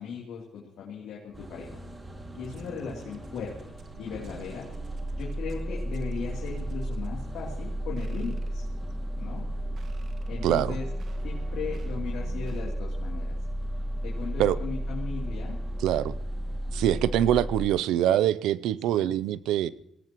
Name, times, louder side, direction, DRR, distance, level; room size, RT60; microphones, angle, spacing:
voice 1, 0.0-1.8 2.4-4.7 5.1-8.6 9.1-9.4 10.3-10.9 11.2-13.4 14.0-15.6 18.9-19.1, left 5 dB, 80° left, -3 dB, 3.1 m, -37 dB
sound 1, 1.3-15.8, left 2 dB, 15° left, 5.0 m, -55 dB
sound 2, 1.3-17.7, right 1 dB, 25° right, 2.4 m, -34 dB
sound 3, 2.4-12.7, right 4 dB, 55° right, 1.9 m, -52 dB
voice 2, 10.4-10.8 14.4-14.6 15.8-16.2 16.7-19.7, right 11 dB, 90° right, 18 dB, 0.5 m, -24 dB
23.5 x 17.5 x 3.1 m, 0.77 s
cardioid pair, 90°, 0 cm